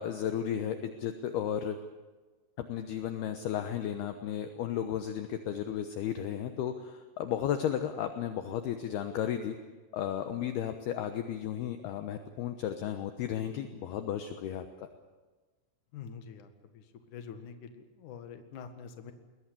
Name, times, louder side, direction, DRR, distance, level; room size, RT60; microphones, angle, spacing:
voice 1, 0.0-1.8 2.6-9.6 9.9-14.9, left 9 dB, 75° left, 8 dB, 2.4 m, -34 dB
voice 2, 15.9-16.8 17.1-19.1, left 7 dB, 55° left, 8 dB, 2.4 m, -46 dB
21.5 x 20.5 x 8.5 m, 1.3 s
omnidirectional pair, 5.9 m